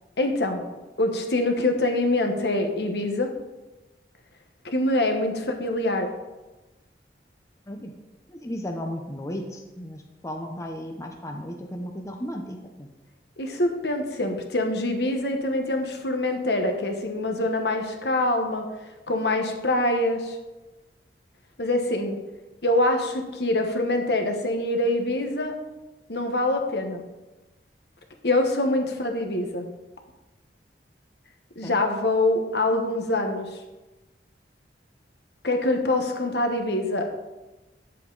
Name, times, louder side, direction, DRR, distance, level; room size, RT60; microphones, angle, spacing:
voice 1, 0.2-0.6 1.0-3.3 4.6-6.1 13.4-18.6 19.1-20.4 21.6-22.2 22.6-25.6 26.1-27.0 28.2-29.7 31.6-33.6 35.4-37.1, left 1 dB, 65° left, 4 dB, 1.2 m, -24 dB
voice 2, 8.3-12.9 31.6-31.8, equal, 15° left, 2 dB, 0.7 m, -35 dB
9.2 x 7.8 x 4.0 m, 1.1 s
head